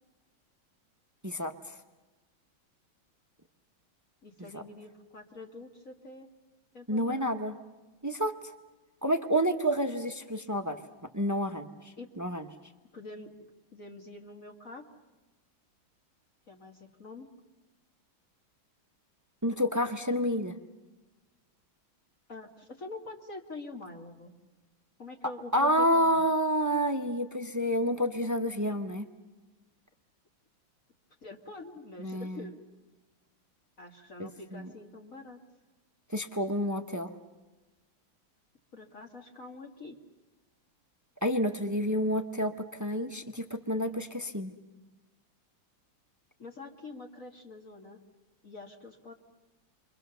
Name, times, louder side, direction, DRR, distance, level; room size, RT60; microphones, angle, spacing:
voice 1, 1.2-1.7 4.5-4.6 6.9-7.5 8.0-8.4 9.0-10.8 11.1-11.7 12.2-12.4 19.4-20.5 25.5-29.1 32.0-32.5 34.2-34.7 36.1-37.1 41.2-44.5, equal, 25° right, 7 dB, 0.4 m, -29 dB
voice 2, 4.2-6.3 6.7-7.3 12.0-12.1 12.9-13.3 13.7-14.8 16.5-17.3 22.3-24.3 25.0-26.3 31.2-32.5 33.8-35.4 38.7-40.0 46.4-48.0 48.4-49.1, left 2 dB, 40° left, 1 dB, 2.1 m, -45 dB
29.5 x 24.0 x 6.9 m, 1.2 s
omnidirectional pair, 2.2 m